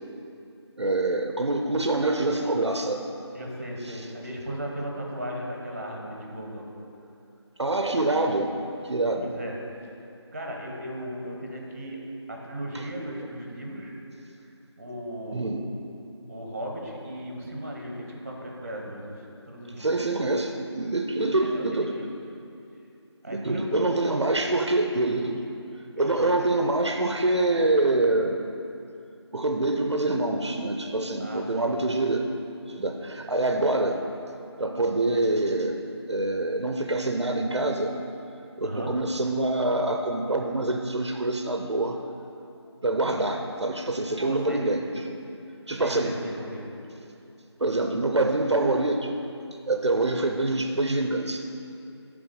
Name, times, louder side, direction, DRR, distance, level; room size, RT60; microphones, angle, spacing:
voice 1, 0.8-3.0 7.6-8.6 8.8-9.3 12.7-12.9 13.1-13.2 15.3-15.6 19.8-22.0 23.3-25.4 26.0-28.4 29.3-32.3 32.7-34.0 34.6-37.9 38.6-42.0 42.8-45.2 45.7-46.1 47.6-49.1 49.7-51.4, right 2 dB, 70° right, 4 dB, 0.6 m, -25 dB
voice 2, 3.3-6.7 9.2-9.6 10.3-12.0 12.3-13.9 14.8-15.5 16.3-19.9 21.2-22.0 23.2-23.9 26.0-26.5 31.2-32.0 38.6-38.9 44.2-44.7 45.7-46.7, equal, 30° right, 0 dB, 0.9 m, -36 dB
11.0 x 3.7 x 5.1 m, 2.7 s
figure-of-eight pair, 170°, 15 cm